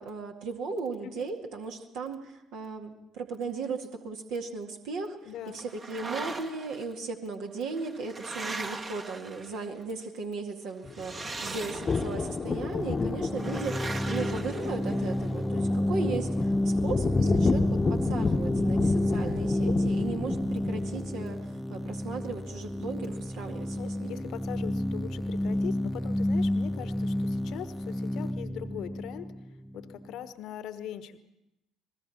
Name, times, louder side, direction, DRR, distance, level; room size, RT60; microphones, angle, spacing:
voice 1, 0.0-5.2 5.5-24.2, right 4 dB, 60° right, 2 dB, 2.1 m, -36 dB
voice 2, 5.2-5.6 23.7-31.2, left 10 dB, 55° left, 13 dB, 1.2 m, -41 dB
sound 1, 5.6-6.8 7.6-9.8 10.9-12.3 13.4-15.3, right 3 dB, 35° right, 1.6 m, -40 dB
sound 2, 10.8-21.2, left 4 dB, 30° left, 1.1 m, -31 dB
sound 3, 12.5-30.1, left 1 dB, 5° left, 0.7 m, -30 dB
29.5 x 21.0 x 4.3 m, 0.88 s
figure-of-eight pair, 50°, 0 cm